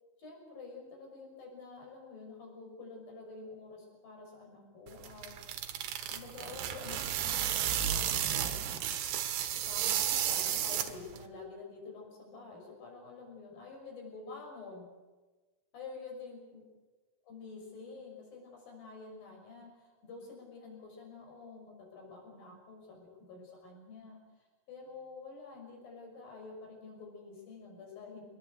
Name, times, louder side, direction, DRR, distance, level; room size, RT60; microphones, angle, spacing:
voice 1, 0.2-5.3 6.1-8.8 9.5-14.9 15.7-16.6 17.3-24.2 24.7-28.2, left 4 dB, 60° left, 1 dB, 7.5 m, -48 dB
sound 1, 4.9-11.2, right 10 dB, 75° right, 3.3 m, -33 dB
24.0 x 20.0 x 8.0 m, 1.2 s
omnidirectional pair, 4.8 m